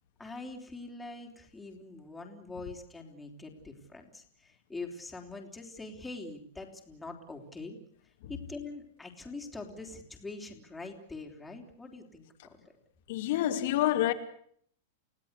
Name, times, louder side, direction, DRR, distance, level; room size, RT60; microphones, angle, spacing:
voice 1, 0.2-7.8 8.3-12.6, left 3 dB, 5° left, 3.6 m, -44 dB
voice 2, 13.1-14.1, left 13 dB, 60° left, 2.6 m, -27 dB
29.5 x 16.5 x 8.3 m
supercardioid pair, 155°, 0 cm